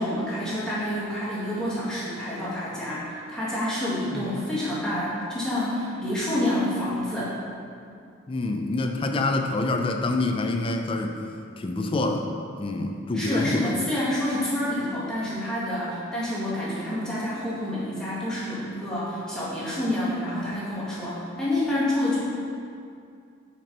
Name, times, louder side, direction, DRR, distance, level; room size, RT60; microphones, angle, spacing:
voice 1, 0.0-7.3 13.1-22.2, left 1 dB, 5° left, -10 dB, 1.7 m, -28 dB
voice 2, 8.3-11.2 11.6-12.3 12.6-13.8, left 2 dB, 25° left, 4 dB, 0.4 m, -26 dB
6.1 x 4.4 x 5.1 m, 2.4 s
head